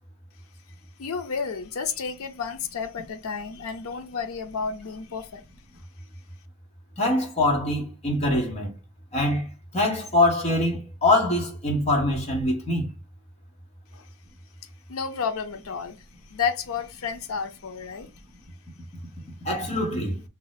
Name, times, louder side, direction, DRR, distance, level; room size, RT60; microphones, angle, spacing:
voice 1, 1.0-5.4 13.9-14.1 14.9-16.0 16.3-18.1, left 6 dB, 75° left, 0.5 m, -31 dB
voice 2, 7.0-8.7 9.1-9.5 9.7-12.9 19.4-20.2, left 1 dB, 30° left, 0.9 m, -23 dB
2.7 x 2.0 x 3.9 m
head